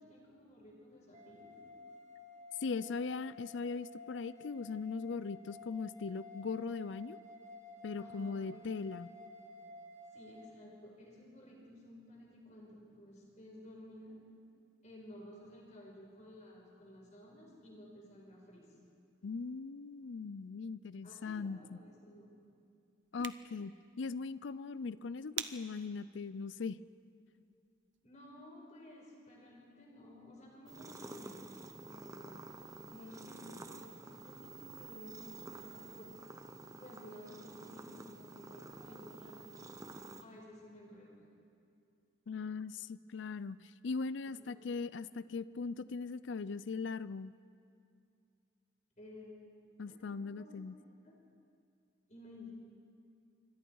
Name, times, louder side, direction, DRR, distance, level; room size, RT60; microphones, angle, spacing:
voice 1, 0.0-1.5 7.9-9.0 10.1-14.2 14.8-18.7 21.0-22.3 28.0-32.4 32.9-36.1 36.8-39.6 40.0-41.2 44.4-44.6 49.0-49.4 49.9-51.1 52.1-52.5, left 1 dB, 35° left, -2 dB, 5.0 m, -54 dB
sound 1, 1.1-10.5, left 3 dB, 40° right, 1.3 m, -53 dB
voice 2, 2.6-7.2 7.8-9.1 19.2-21.8 23.1-26.8 42.3-47.3 49.8-50.7, left 4 dB, 70° left, 16 dB, 0.5 m, -40 dB
sound 2, 23.0-28.0, right 10 dB, 65° right, 0.8 m, -49 dB
sound 3, 30.7-40.2, right 2 dB, 15° right, 0.9 m, -50 dB
27.0 x 24.5 x 4.7 m, 2.4 s
head